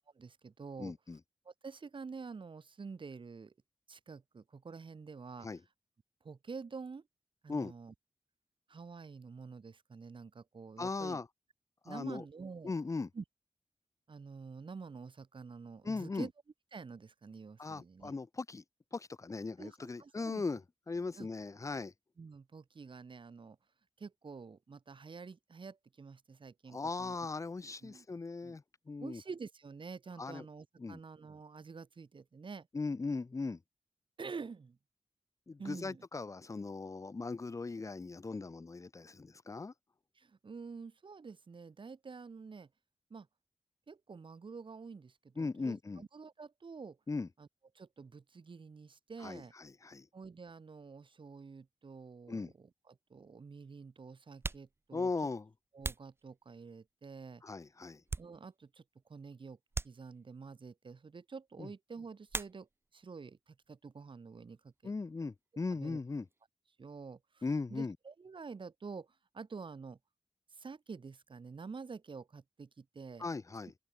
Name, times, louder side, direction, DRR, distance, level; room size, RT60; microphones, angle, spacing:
voice 1, 0.2-0.9 1.4-3.5 3.9-5.5 6.2-7.0 7.4-7.9 8.7-11.2 11.8-12.7 13.1-13.2 14.1-16.3 16.7-18.1 19.6-20.4 21.2-21.3 22.2-23.6 24.0-27.1 27.8-28.0 28.4-28.6 29.0-32.7 34.2-34.8 35.6-36.1 40.2-42.7 43.1-43.3 43.9-47.0 47.4-47.5 47.8-49.5 50.1-55.1 55.7-57.4 58.2-58.8 59.1-59.6 59.8-62.7 62.9-64.9 65.7-66.0 66.8-67.4 67.7-69.1 69.3-70.0 70.6-73.3, right 5 dB, 55° right, 7.9 m, -48 dB
voice 2, 0.8-1.2 5.4-5.6 7.5-7.7 10.8-11.3 11.9-12.2 12.6-13.1 15.8-16.3 17.6-18.6 18.9-21.9 26.7-29.2 30.2-30.4 30.8-31.0 32.7-33.6 35.5-39.7 45.4-46.0 47.1-47.3 49.2-50.1 52.3-52.5 54.9-55.5 57.4-58.0 61.6-61.7 64.8-66.3 67.4-68.0 73.2-73.7, left 3 dB, 30° left, 0.8 m, -38 dB
sound 1, 52.5-52.6 53.6-53.7 54.3-56.9 57.4-58.8 59.1-59.2 59.7-60.5 62.3-63.1 63.3-64.0 64.3-66.5, right 3 dB, 25° right, 0.6 m, -44 dB
wide cardioid pair, 140°, 10 cm